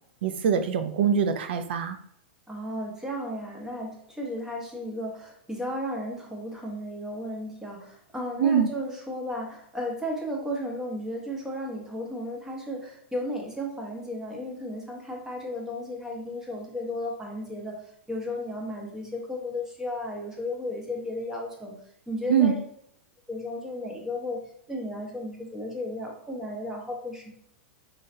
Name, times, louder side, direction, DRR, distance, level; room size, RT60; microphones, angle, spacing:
voice 1, 0.2-2.0 8.4-8.7 22.3-22.6, right 7 dB, 70° right, 8 dB, 0.5 m, -23 dB
voice 2, 2.5-17.8 18.1-21.7 22.1-22.6 23.3-24.4 24.7-27.4, left 1 dB, 10° right, 0 dB, 1.1 m, -34 dB
3.8 x 3.3 x 2.7 m, 0.69 s
hypercardioid pair, 110°, 6 cm